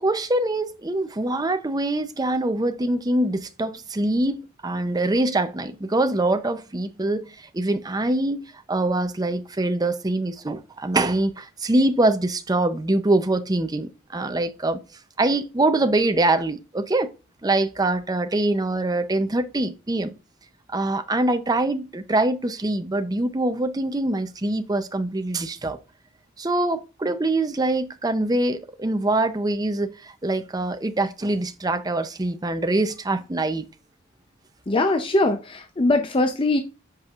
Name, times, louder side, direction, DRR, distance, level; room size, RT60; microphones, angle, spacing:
voice 1, 0.0-8.4 8.7-14.8 15.2-17.1 17.4-20.1 20.7-25.8 26.4-33.6, right 2 dB, 20° right, 0.6 m, -24 dB
voice 2, 34.7-36.6, left 2 dB, 25° left, 0.5 m, -21 dB
8.0 x 5.3 x 2.4 m
head